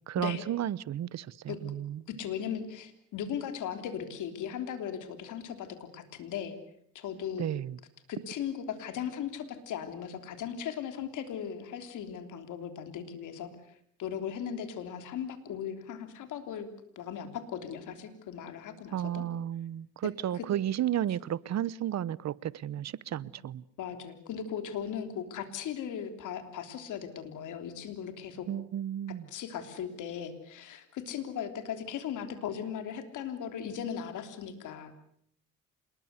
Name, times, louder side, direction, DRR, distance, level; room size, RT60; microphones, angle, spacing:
voice 1, 0.1-2.0 7.4-7.8 18.9-23.6 28.5-29.3, right 11 dB, 60° right, 0.9 m, -33 dB
voice 2, 2.1-6.5 6.9-7.5 8.1-13.5 14.0-16.7 16.9-19.2 20.0-20.5 23.2-23.3 23.8-28.5 29.3-34.9, left 8 dB, 80° left, 3.4 m, -38 dB
27.0 x 21.0 x 8.1 m
cardioid pair, 90°, 30 cm